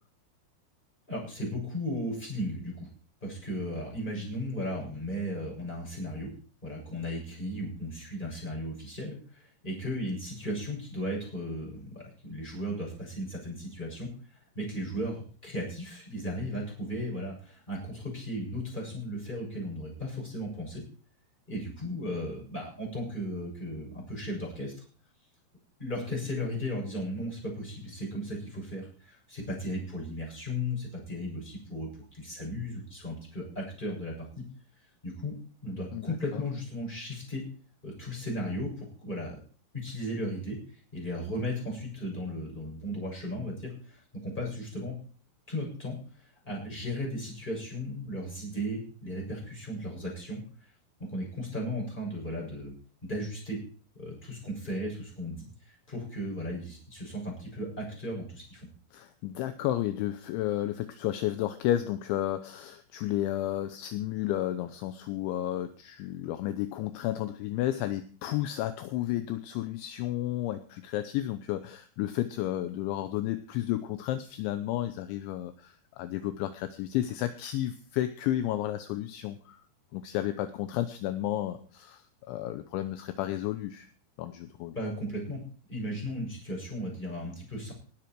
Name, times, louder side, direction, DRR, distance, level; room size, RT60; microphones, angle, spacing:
voice 1, 1.1-2.9 3.2-6.3 6.6-14.1 14.5-20.8 21.5-24.7 25.8-34.4 35.0-35.3 35.6-37.4 37.8-39.4 39.7-40.6 40.9-45.0 45.5-46.0 46.4-50.4 51.0-52.7 53.0-53.6 54.0-55.5 55.9-58.6 84.7-85.4 85.7-87.7, equal, 10° left, -2 dB, 6.9 m, -35 dB
voice 2, 58.9-79.6 79.9-82.0 82.3-83.9 84.2-84.7, left 13 dB, 80° left, 10 dB, 3.0 m, -32 dB
19.5 x 10.0 x 4.6 m, 0.41 s
omnidirectional pair, 5.7 m